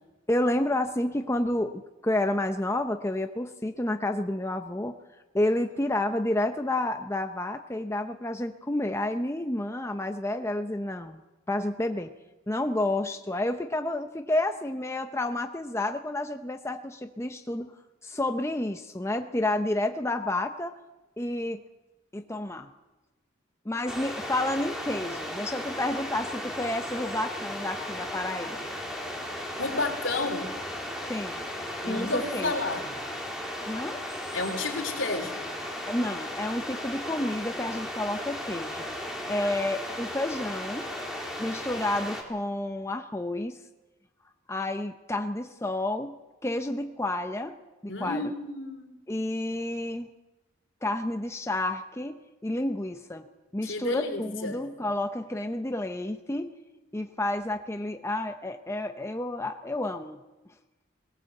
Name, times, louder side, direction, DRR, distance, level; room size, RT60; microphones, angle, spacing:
voice 1, 0.3-4.9 5.3-11.2 11.5-12.1 12.5-17.7 18.0-20.7 21.2-21.6 22.1-22.7 23.7-28.6 31.1-31.4 31.8-32.5 33.7-34.0 35.9-38.9 39.3-40.9 41.4-43.6 44.5-48.3 49.1-50.1 50.8-56.6 56.9-60.2, left 1 dB, 15° left, 6 dB, 0.7 m, -30 dB
sound 1, 23.9-42.2, left 1 dB, ahead, 3.4 m, -36 dB
voice 2, 29.6-30.5 31.8-32.9 34.3-35.4 39.4-39.5 47.9-48.9 53.6-54.7, left 2 dB, 70° left, 4 dB, 3.4 m, -31 dB
20.5 x 18.5 x 7.8 m, 1.1 s
head